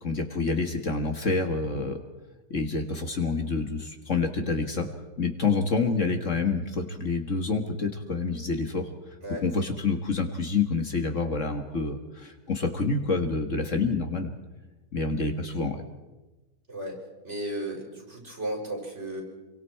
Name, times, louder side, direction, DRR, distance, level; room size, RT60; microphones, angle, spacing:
voice 1, 0.0-2.0 2.5-4.9 5.2-8.9 9.4-14.3 14.9-15.8, left 4 dB, 50° left, 4 dB, 1.9 m, -27 dB
voice 2, 17.2-19.2, right 1 dB, 45° right, -2 dB, 6.5 m, -34 dB
27.5 x 23.5 x 4.7 m, 1.1 s
omnidirectional pair, 1.7 m